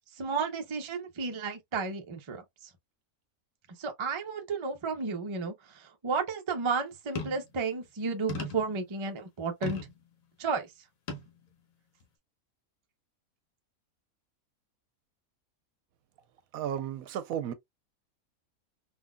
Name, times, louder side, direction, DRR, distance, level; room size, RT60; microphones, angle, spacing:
voice 1, 0.2-2.4 3.8-9.8 10.4-10.7, right 4 dB, 35° right, 0.4 m, -32 dB
sound 1, 7.2-7.5 8.3-8.8 9.6-10.0 11.1-11.3 12.0-12.1, left 3 dB, 70° left, 1.3 m, -36 dB
voice 2, 16.5-17.5, right 9 dB, 75° right, 1.0 m, -33 dB
3.8 x 2.7 x 2.2 m
omnidirectional pair, 1.5 m